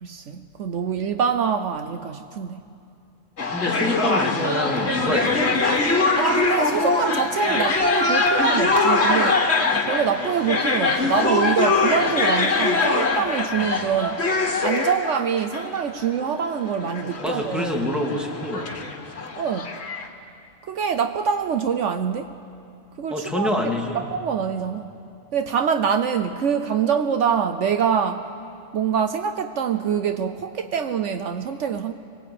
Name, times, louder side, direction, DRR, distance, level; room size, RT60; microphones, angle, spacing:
voice 1, 0.0-2.6 6.2-9.4 9.9-14.2 14.6-17.7 19.4-19.7 20.7-22.3 23.0-23.7 24.1-24.9 25.3-28.3 28.7-31.9, right 7 dB, 70° right, 8 dB, 1.1 m, -25 dB
sound 1, 3.4-20.1, left 3 dB, 55° left, 2.0 m, -22 dB
voice 2, 3.5-5.6 7.5-7.6 17.2-18.8 23.1-24.1, left 1 dB, ahead, 0 dB, 2.6 m, -26 dB
25.0 x 20.5 x 8.7 m, 2.5 s
omnidirectional pair, 1.3 m